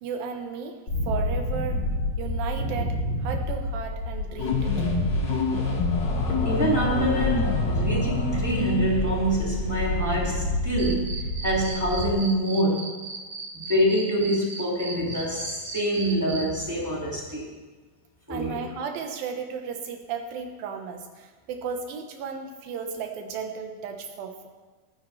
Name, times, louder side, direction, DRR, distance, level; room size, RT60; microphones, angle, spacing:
voice 1, 0.0-0.8 1.1-1.8 2.2-5.1 18.3-24.5, right 6 dB, 80° right, 4 dB, 2.9 m, -34 dB
sound 1, 0.9-12.1, left 1 dB, 35° left, 4.0 m, -29 dB
sound 2, 4.3-11.0, left 4 dB, 80° left, 1.0 m, -28 dB
voice 2, 6.4-12.8 13.5-17.5 18.3-18.6, right 1 dB, 10° right, -4 dB, 1.2 m, -26 dB
Cricket, 10.8-16.4, right 4 dB, 50° right, 3.8 m, -36 dB
17.5 x 9.5 x 3.3 m, 1.3 s
omnidirectional pair, 4.2 m